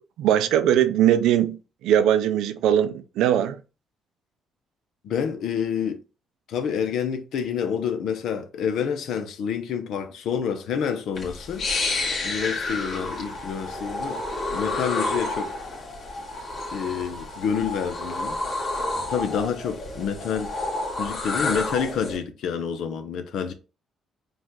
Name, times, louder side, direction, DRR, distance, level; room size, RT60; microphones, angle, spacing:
voice 1, 0.2-3.6, right 10 dB, 90° right, 0.5 m, -20 dB
voice 2, 5.0-6.0 6.5-11.7 12.2-14.2 14.5-15.5 16.7-18.4 19.1-20.5 21.0-23.5, left 7 dB, 75° left, 0.8 m, -28 dB
sound 1, 11.1-22.2, left 2 dB, 55° left, 2.1 m, -30 dB
5.2 x 2.5 x 3.7 m
cardioid pair, 90°, 0 cm